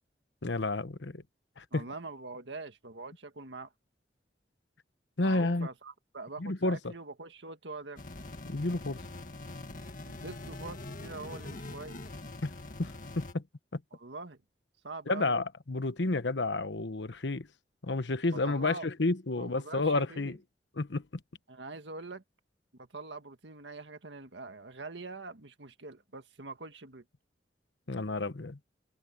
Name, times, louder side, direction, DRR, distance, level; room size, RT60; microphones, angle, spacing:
voice 1, 0.4-1.2 1.6-1.8 5.2-5.7 6.4-6.9 8.5-9.0 12.4-12.5 12.8-13.4 13.7-13.8 15.1-17.5 17.8-20.4 20.8-21.0 27.9-28.6, left 2 dB, 85° left, 1.1 m, -31 dB
voice 2, 1.7-3.7 5.2-8.0 10.1-12.1 13.9-14.4 14.8-15.3 18.3-18.9 19.4-20.4 21.5-22.2 22.8-27.0, right 3 dB, 90° right, 1.8 m, -44 dB
sound 1, 8.0-13.3, left 2 dB, 50° left, 1.9 m, -43 dB
head